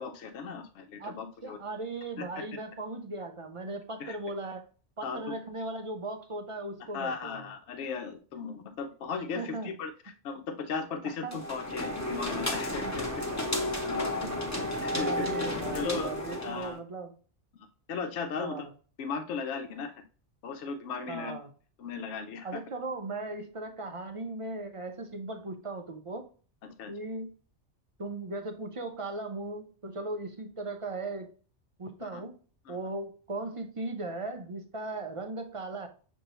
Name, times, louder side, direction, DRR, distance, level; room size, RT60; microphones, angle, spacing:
voice 1, 0.0-1.6 2.2-2.3 4.0-4.2 5.0-5.2 6.9-13.2 13.6-14.2 14.8-15.3 15.7-16.1 16.4-16.8 17.5-18.6 19.0-19.9 20.4-21.3 21.8-22.6 26.6-26.9 32.0-32.2 32.7-32.8, left 5 dB, 75° left, 6 dB, 0.9 m, -37 dB
voice 2, 1.0-4.7 5.0-7.5 9.3-9.7 11.0-11.4 14.2-14.4 15.0-17.1 18.4-18.7 21.1-21.5 22.4-26.3 26.9-27.3 28.0-31.3 31.8-32.4 32.7-35.9, right 2 dB, 40° right, 6 dB, 0.5 m, -38 dB
sound 1, 11.3-16.8, left 1 dB, 15° left, 0.8 m, -32 dB
6.6 x 2.7 x 2.9 m, 0.38 s
omnidirectional pair, 1.2 m